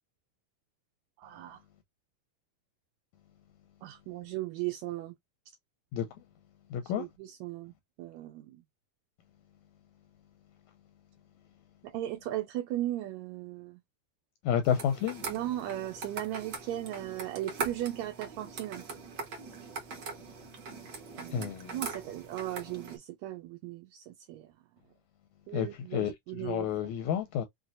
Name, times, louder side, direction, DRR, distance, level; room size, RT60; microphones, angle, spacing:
voice 1, 1.2-1.6 3.8-5.1 6.9-7.7 8.0-8.6 11.8-13.8 15.3-18.8 21.2-24.5 25.5-27.0, right 14 dB, 90° right, 1.5 m, -37 dB
voice 2, 6.7-7.1 14.5-15.2 21.3-21.8 25.5-26.1 26.4-27.4, left 9 dB, 80° left, 1.7 m, -30 dB
sound 1, 14.6-23.0, right 4 dB, 70° right, 1.0 m, -41 dB
5.9 x 2.2 x 2.5 m
omnidirectional pair, 3.7 m